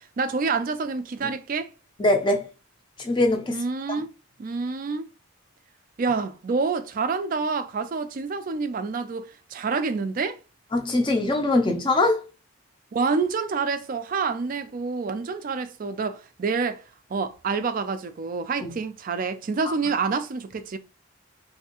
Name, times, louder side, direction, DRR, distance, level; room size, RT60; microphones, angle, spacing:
voice 1, 0.0-1.7 3.5-4.1 4.4-5.1 6.0-10.4 12.9-16.8 17.1-20.8, right 4 dB, 40° right, 0.3 m, -27 dB
voice 2, 2.0-2.5 3.0-3.6 10.7-12.2 18.6-18.7 19.6-19.7, left 2 dB, 20° left, 0.5 m, -22 dB
3.2 x 2.6 x 2.9 m
head